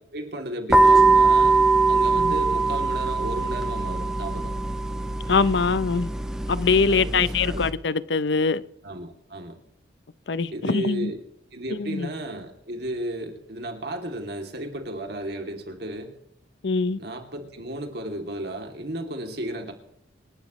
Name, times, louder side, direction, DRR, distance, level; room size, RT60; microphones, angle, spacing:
voice 1, 0.1-1.6 1.9-4.6 6.9-7.7 8.8-9.6 10.5-11.2 11.5-16.1 17.0-19.7, right 1 dB, 60° right, 2.8 m, -34 dB
sound 1, 0.7-7.7, right 3 dB, 5° right, 1.2 m, -21 dB
voice 2, 5.3-6.1 6.5-8.6 10.3-11.1 11.8-12.1 16.6-17.0, left 4 dB, 75° left, 0.6 m, -23 dB
26.5 x 12.5 x 3.2 m
head